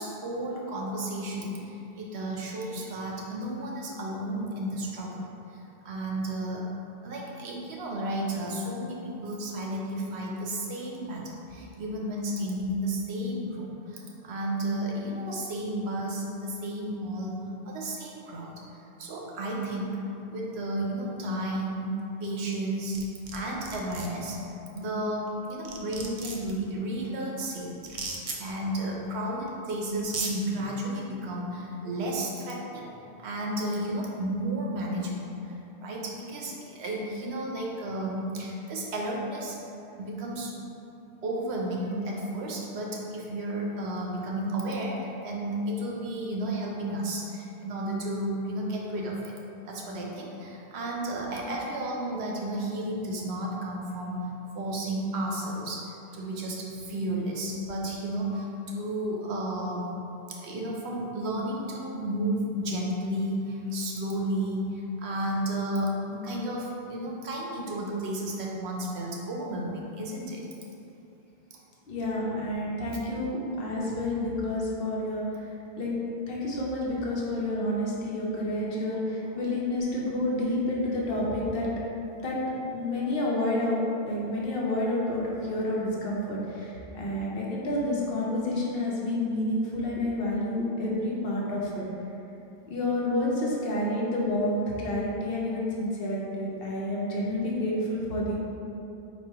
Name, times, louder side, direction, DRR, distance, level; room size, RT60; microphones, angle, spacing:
voice 1, 0.0-6.7 7.0-17.4 17.6-18.5 19.0-20.0 20.3-21.9 22.2-23.0 23.3-24.4 24.7-39.6 40.0-40.5 41.2-49.3 49.6-54.3 54.5-59.9 60.3-70.5, right 1 dB, 70° right, -2 dB, 0.9 m, -32 dB
sound 1, 22.9-23.4 23.6-24.1 25.3-25.4 25.6-26.5 27.9-28.4 29.5-29.6 30.0-30.3, right 4 dB, 55° right, 0.4 m, -35 dB
voice 2, 71.9-75.9 76.3-81.7 82.2-83.8 84.0-91.8 92.7-98.4, left 1 dB, 60° left, -5 dB, 0.9 m, -29 dB
4.2 x 2.3 x 4.5 m, 2.9 s
omnidirectional pair, 1.1 m